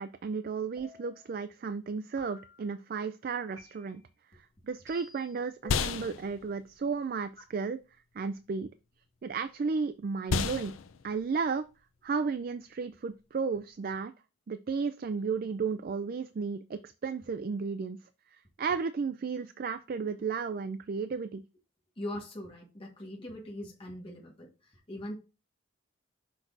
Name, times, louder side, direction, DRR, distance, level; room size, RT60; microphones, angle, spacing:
voice 1, 0.0-4.0 4.6-7.8 8.1-8.7 9.2-10.7 11.0-11.6 12.0-14.1 14.5-18.0 18.3-21.4, right 5 dB, 45° right, 0.3 m, -33 dB
sound 1, 0.8-1.3 2.2-2.7 3.6-4.1 4.9-5.4, left 2 dB, 15° right, 3.7 m, -55 dB
sound 2, 4.3-13.9, left 5 dB, 80° left, 0.5 m, -37 dB
voice 2, 22.0-24.5 24.9-25.2, left 1 dB, 25° left, 1.4 m, -41 dB
6.0 x 6.0 x 2.6 m
head